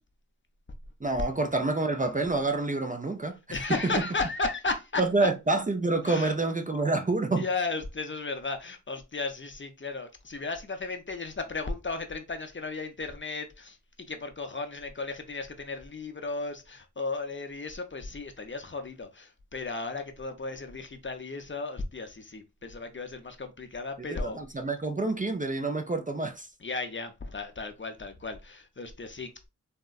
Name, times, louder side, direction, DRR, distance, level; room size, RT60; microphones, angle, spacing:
voice 1, 1.0-3.6 3.8-4.0 5.0-7.5 24.1-26.5, right 3 dB, 25° right, 0.3 m, -28 dB
voice 2, 3.5-5.0 6.1-6.3 7.4-24.4 26.6-29.5, left 3 dB, 40° left, 0.5 m, -35 dB
3.5 x 2.0 x 2.3 m
wide cardioid pair, 55°, 31 cm